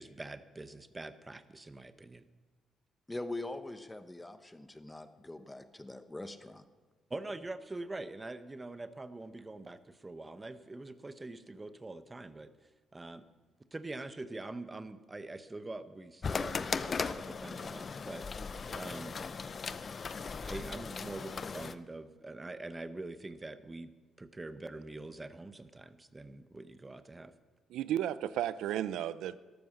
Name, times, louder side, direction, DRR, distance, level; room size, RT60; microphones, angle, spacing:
voice 1, 0.0-2.2 7.1-12.5 12.9-13.2 13.7-18.3 18.7-19.2 20.4-23.9 24.2-27.3, right 2 dB, 20° right, 12 dB, 0.9 m, -44 dB
voice 2, 3.1-6.6, left 2 dB, 10° left, 10 dB, 1.0 m, -43 dB
sound 1, 16.2-21.7, left 5 dB, 40° left, 0.6 m, -38 dB
voice 3, 27.7-29.4, right 11 dB, 85° right, 16 dB, 0.5 m, -33 dB
13.0 x 12.5 x 6.6 m, 1.3 s
cardioid pair, 90°, 0 cm